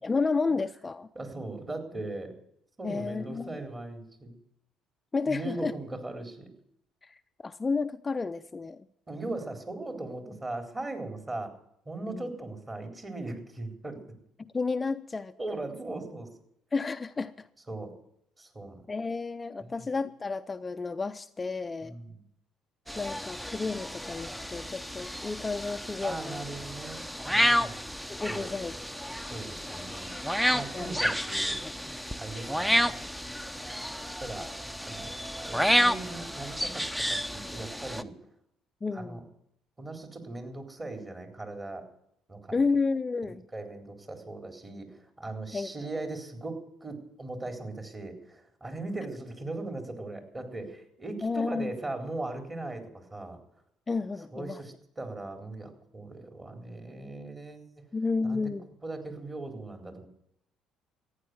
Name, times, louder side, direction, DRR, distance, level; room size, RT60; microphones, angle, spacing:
voice 1, 0.0-1.1 2.8-3.6 5.1-5.7 7.0-8.9 12.1-12.3 14.4-15.3 16.7-17.5 18.9-21.9 23.0-26.4 28.1-28.8 30.7-30.9 31.6-31.7 38.8-39.3 42.5-43.5 45.5-45.7 46.1-46.2 51.2-51.7 53.9-54.6 57.9-58.6, left 4 dB, 25° left, 10 dB, 0.6 m, -31 dB
voice 2, 1.1-2.4 2.8-4.4 5.3-6.5 9.1-11.5 11.9-14.0 15.4-16.3 17.7-17.9 18.4-18.8 19.6-19.9 21.8-22.2 26.0-27.7 28.3-28.5 29.3-30.1 30.5-31.6 32.2-33.0 34.2-34.5 34.8-35.1 35.4-38.1 38.9-39.2 39.8-41.9 42.3-42.6 43.5-53.4 54.3-57.8 58.2-58.5 58.8-60.1, right 2 dB, 25° right, 4 dB, 4.0 m, -39 dB
sound 1, 22.9-38.0, equal, 5° right, 0.8 m, -31 dB
14.5 x 9.7 x 7.9 m, 0.75 s
hypercardioid pair, 60°, 0 cm